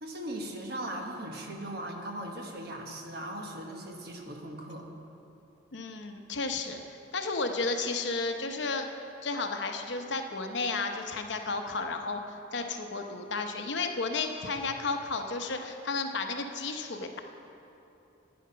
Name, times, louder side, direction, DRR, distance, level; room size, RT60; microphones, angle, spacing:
voice 1, 0.0-4.9, right 1 dB, 55° right, 2 dB, 1.2 m, -39 dB
voice 2, 5.7-8.9 9.2-17.2, left 3 dB, 65° left, 5 dB, 0.8 m, -33 dB
11.5 x 9.4 x 5.6 m, 2.9 s
head